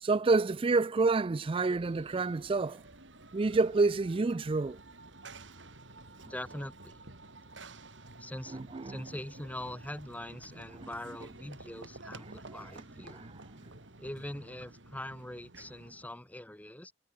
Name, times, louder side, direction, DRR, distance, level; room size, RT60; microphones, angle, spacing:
voice 1, 0.0-2.8 3.3-4.8 8.5-9.1 10.8-10.9 12.3-12.6 13.1-13.3, right 3 dB, 30° right, 0.4 m, -28 dB
Run / Train, 1.7-16.2, right 2 dB, 75° right, 5.5 m, -51 dB
voice 2, 6.2-7.0 8.1-13.3 14.0-16.9, left 1 dB, 10° left, 1.2 m, -43 dB
head